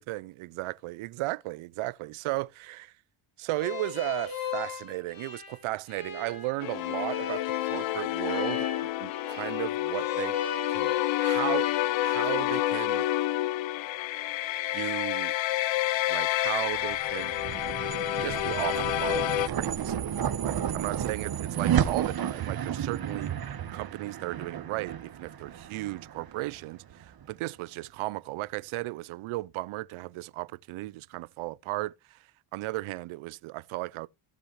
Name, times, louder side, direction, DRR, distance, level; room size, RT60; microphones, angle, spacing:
voice 1, 0.0-2.9 3.4-10.4 10.7-10.9 11.2-11.7 12.0-13.1 14.7-15.3 16.1-17.3 18.2-20.1 20.4-23.3 23.7-32.2 32.5-34.1, right 19 dB, 75° right, 0.6 m, -35 dB
sound 1, 3.6-11.8, left 6 dB, 45° left, 3.6 m, -37 dB
sound 2, 6.6-19.5, left 15 dB, 65° left, 0.7 m, -29 dB
sound 3, 16.7-27.2, right 9 dB, 45° right, 1.3 m, -32 dB
15.5 x 6.7 x 3.2 m
cardioid pair, 100°, 50 cm